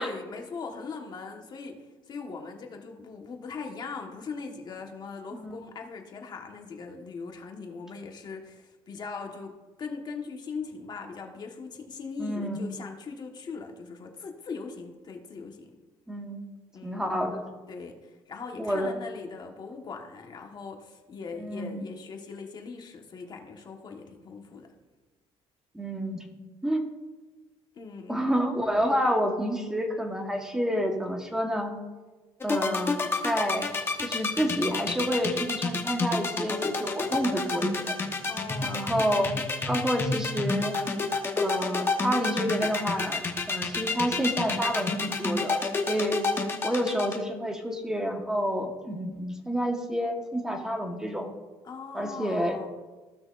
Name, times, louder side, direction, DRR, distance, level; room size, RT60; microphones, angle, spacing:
voice 1, 0.0-9.5 9.8-15.7 16.7-17.1 17.7-24.7 27.7-28.2 38.3-38.9 51.6-52.7, left 4 dB, 45° left, 3 dB, 1.4 m, -40 dB
voice 2, 12.2-12.7 16.1-16.5 16.8-17.5 18.6-18.9 21.4-21.8 25.7-26.2 26.6-26.9 28.1-31.7 32.4-33.7 34.0-38.0 38.6-39.3 39.7-40.8 41.4-45.6 45.9-46.2 46.6-51.3 51.9-52.6, equal, 5° right, 3 dB, 1.3 m, -29 dB
sound 1, 32.4-47.2, left 4 dB, 25° left, 1.1 m, -28 dB
15.5 x 6.1 x 2.5 m, 1.2 s
cardioid pair, 110°, 10 cm